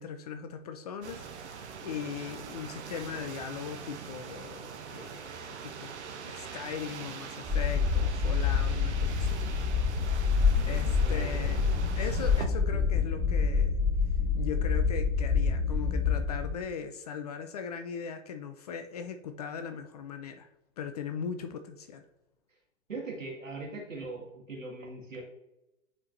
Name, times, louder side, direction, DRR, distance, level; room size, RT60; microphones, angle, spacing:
voice 1, 0.0-9.4 10.6-11.6 12.0-13.8 14.3-20.5 20.8-22.1, left 7 dB, 35° left, 8 dB, 0.4 m, -39 dB
sound 1, 1.0-12.5, right 6 dB, 60° right, 0.9 m, -42 dB
sound 2, 7.4-16.5, left 5 dB, 10° right, 1.7 m, -27 dB
voice 2, 10.4-11.7 22.9-25.2, right 3 dB, 75° right, 0 dB, 2.0 m, -41 dB
9.3 x 4.4 x 2.6 m, 0.94 s
figure-of-eight pair, 105°, 39 cm